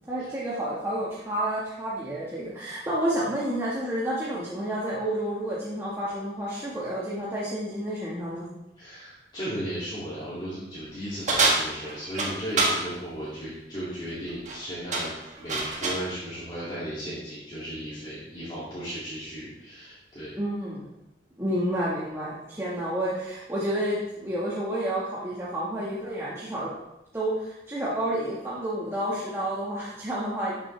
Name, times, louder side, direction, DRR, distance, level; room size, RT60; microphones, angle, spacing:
voice 1, 0.1-8.4 20.4-20.8 21.4-26.7 27.1-30.6, right 1 dB, 15° right, -8 dB, 1.6 m, -30 dB
voice 2, 8.8-20.3, equal, 25° left, -10 dB, 2.5 m, -36 dB
sound 1, 11.3-12.8 14.3-14.6 14.9-16.1, right 2 dB, 40° right, 1.6 m, -26 dB
12.5 x 6.8 x 3.3 m, 0.89 s
head